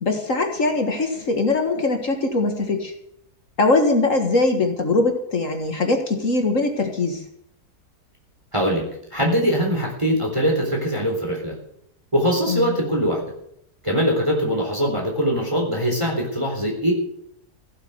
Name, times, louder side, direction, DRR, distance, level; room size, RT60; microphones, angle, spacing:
voice 1, 0.0-2.9 3.6-7.2 12.5-12.8, left 3 dB, 55° left, 4 dB, 2.0 m, -21 dB
voice 2, 8.5-8.8 9.1-11.5 12.1-13.2 13.8-16.9, equal, 20° right, 0 dB, 3.6 m, -22 dB
16.0 x 8.8 x 7.9 m, 0.73 s
omnidirectional pair, 1.7 m